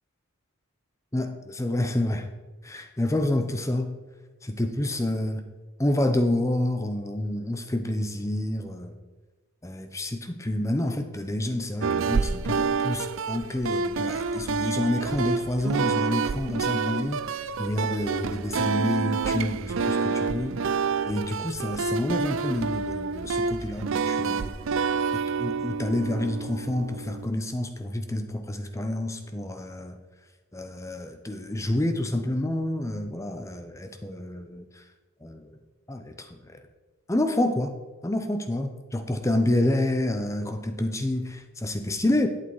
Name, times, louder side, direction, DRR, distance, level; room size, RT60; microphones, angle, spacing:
voice 1, 1.1-2.3 2.6-4.0 4.4-5.4 5.8-9.0 9.6-20.6 21.1-24.5 25.1-30.0 30.5-34.8 35.2-35.6 35.9-36.6 37.1-37.7 38.0-42.3, left 1 dB, 15° left, 7 dB, 0.7 m, -28 dB
sound 1, 11.8-27.3, right 5 dB, 65° right, 0.4 m, -28 dB
11.5 x 8.7 x 4.7 m, 1.2 s
head